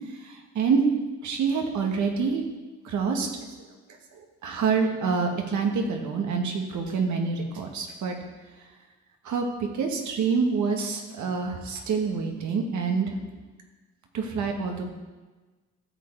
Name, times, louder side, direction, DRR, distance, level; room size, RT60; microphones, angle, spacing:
voice 1, 1.2-2.4 2.8-3.3 4.4-8.2 9.2-9.5 9.7-13.1 14.1-14.8, right 5 dB, 75° right, 3 dB, 1.7 m, -26 dB
13.0 x 6.7 x 4.6 m, 1.2 s
cardioid pair, 90°, 30 cm